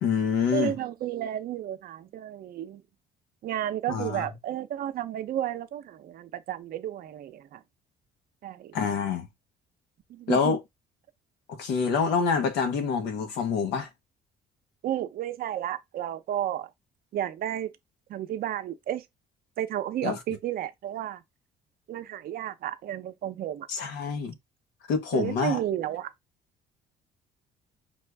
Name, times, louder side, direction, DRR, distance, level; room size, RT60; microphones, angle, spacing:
voice 1, 0.0-0.8 3.9-4.3 8.7-9.3 10.3-10.6 11.5-13.9 20.0-20.2 23.7-24.3 24.9-25.6, left 5 dB, 85° left, 1.2 m, -26 dB
voice 2, 0.5-2.8 3.4-7.6 8.4-8.7 10.1-10.5 14.8-16.7 17.1-17.7 18.1-19.0 19.6-21.2 21.9-23.7 25.1-26.1, right 11 dB, 60° right, 0.7 m, -32 dB
5.4 x 2.5 x 3.3 m
cardioid pair, 110°, 17 cm